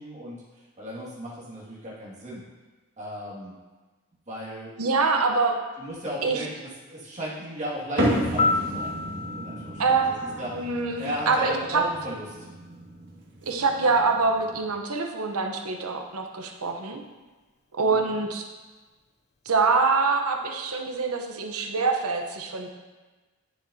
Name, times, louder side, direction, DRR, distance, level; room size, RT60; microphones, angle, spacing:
voice 1, 0.0-2.4 3.0-3.5 4.3-4.7 5.8-9.0 9.3-10.7 11.0-12.5 17.8-18.2, equal, 30° right, -6 dB, 2.1 m, -36 dB
voice 2, 4.8-5.6 6.2-6.4 9.8-11.8 13.5-17.0 17.8-18.5 19.5-22.7, right 4 dB, 80° right, 3 dB, 0.9 m, -25 dB
sound 1, 8.0-14.7, equal, 50° right, 1.7 m, -32 dB
Piano, 8.4-11.3 19.5-19.7, left 3 dB, 30° left, 0.4 m, -30 dB
9.9 x 7.4 x 2.8 m, 1.3 s
head